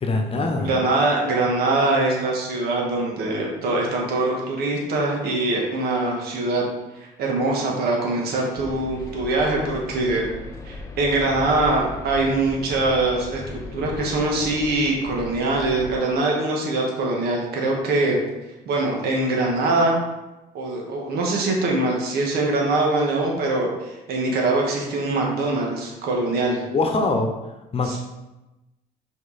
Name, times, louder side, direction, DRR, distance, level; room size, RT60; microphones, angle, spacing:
voice 1, 0.0-0.7 26.7-27.3 27.7-28.0, left 3 dB, 35° left, 4 dB, 1.0 m, -23 dB
voice 2, 0.6-6.7 6.9-10.3 10.6-18.2 18.6-20.0 20.5-26.6 27.8-28.0, right 2 dB, 70° right, -1 dB, 1.6 m, -23 dB
sound 1, 8.6-16.0, left 2 dB, 20° left, 0.6 m, -37 dB
5.5 x 4.6 x 4.2 m, 1.0 s
cardioid pair, 110°, 17 cm